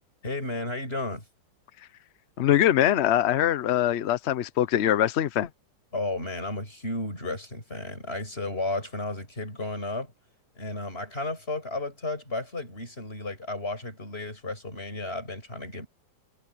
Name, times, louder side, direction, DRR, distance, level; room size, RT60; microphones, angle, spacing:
voice 1, 0.2-1.2 5.9-10.1 10.5-15.9, left 2 dB, 30° left, 6.7 m, -33 dB
voice 2, 2.4-5.5, left 11 dB, 85° left, 0.5 m, -23 dB
omnidirectional pair, 2.1 m